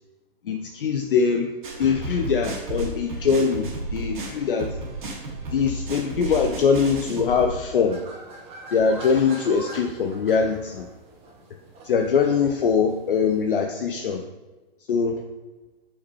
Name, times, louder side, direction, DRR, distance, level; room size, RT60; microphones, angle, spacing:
voice 1, 0.4-1.5 1.8-4.8 5.5-8.0 8.7-10.9 11.8-14.2 14.9-15.2, left 5 dB, 60° left, 5 dB, 0.6 m, -22 dB
sound 1, 1.6-7.5, right 1 dB, 50° right, 2.1 m, -32 dB
sound 2, 7.7-13.5, right 2 dB, 20° right, 1.3 m, -43 dB
7.2 x 5.7 x 3.0 m, 1.2 s
figure-of-eight pair, 115°, 31 cm